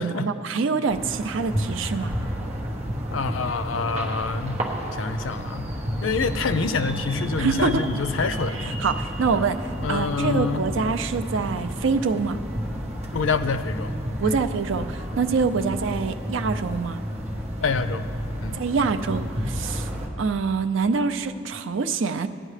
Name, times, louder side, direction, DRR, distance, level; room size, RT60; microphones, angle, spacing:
voice 1, 0.0-2.1 7.4-7.9 8.5-12.4 14.2-17.0 18.5-19.9 20.2-22.3, right 4 dB, 75° right, 9 dB, 0.4 m, -25 dB
sound 1, 0.9-20.1, equal, 35° right, 1.1 m, -31 dB
voice 2, 3.1-4.6 4.9-5.7 6.0-8.7 9.8-10.6 13.1-13.9 14.2-14.3 17.6-18.0 18.4-18.6, left 4 dB, 90° left, 11 dB, 0.5 m, -26 dB
16.0 x 9.9 x 3.3 m, 2.4 s
head